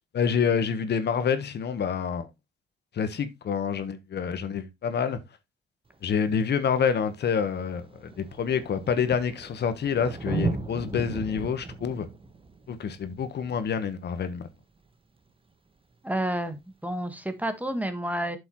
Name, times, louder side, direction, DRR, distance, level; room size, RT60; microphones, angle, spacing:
voice 1, 0.1-2.3 2.9-5.2 6.0-12.0 12.7-14.5, left 7 dB, 55° left, 1.3 m, -27 dB
Thunder, 5.9-6.0 7.0-7.1 7.3-14.6 16.3-16.4, right 3 dB, 25° right, 1.3 m, -36 dB
voice 2, 16.0-16.6 16.8-18.4, right 1 dB, 5° right, 1.6 m, -29 dB
8.3 x 7.0 x 3.1 m
cardioid pair, 90°, 20 cm